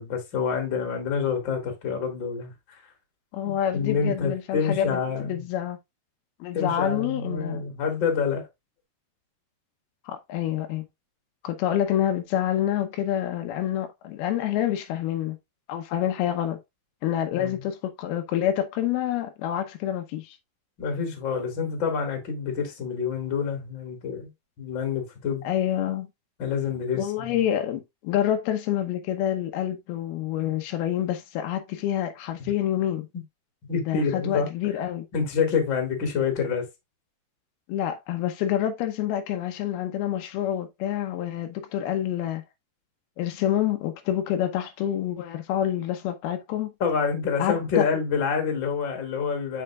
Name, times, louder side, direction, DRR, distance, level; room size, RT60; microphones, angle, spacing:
voice 1, 0.0-2.8 3.4-5.4 6.5-8.5 17.3-17.6 20.8-24.3 24.6-25.4 26.4-27.4 32.4-32.5 32.9-33.0 33.7-34.5 35.1-36.7 46.8-49.6, left 6 dB, 35° left, 2.3 m, -27 dB
voice 2, 3.3-5.8 6.4-7.7 10.1-10.8 11.4-15.4 15.7-16.6 17.0-20.4 25.4-26.1 26.9-33.1 33.9-35.1 37.7-42.4 43.2-46.7 47.4-47.9, left 11 dB, 90° left, 2.8 m, -27 dB
7.8 x 5.7 x 2.4 m
omnidirectional pair, 4.3 m